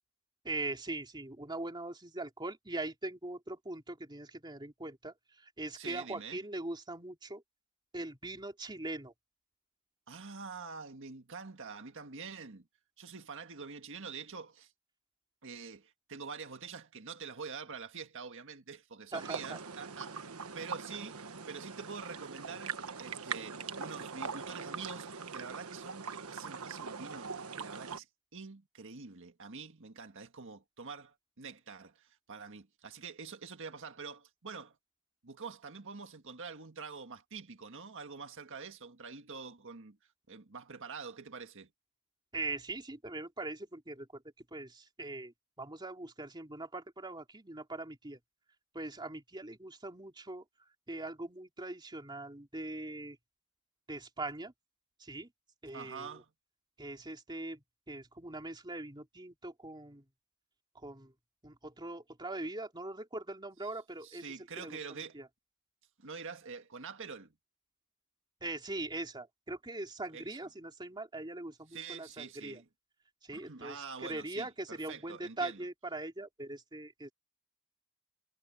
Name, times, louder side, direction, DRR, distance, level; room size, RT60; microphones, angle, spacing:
voice 1, 0.4-7.4 7.9-9.1 19.1-19.6 42.3-44.2 44.5-48.2 48.7-50.4 50.9-53.2 53.9-54.5 55.0-55.3 55.6-56.2 56.8-60.0 60.7-61.1 61.4-65.3 68.4-72.6 73.2-77.1, right 2 dB, 20° right, 3.2 m, -41 dB
voice 2, 5.7-6.4 10.1-12.7 13.0-14.7 15.4-28.1 28.3-34.7 35.2-40.0 40.3-41.7 55.7-56.3 64.0-65.2 66.0-67.3 70.1-70.2 71.7-72.6 73.3-75.6, right 5 dB, 60° right, 1.7 m, -46 dB
sound 1, 19.1-28.0, right 5 dB, 80° right, 1.4 m, -42 dB
head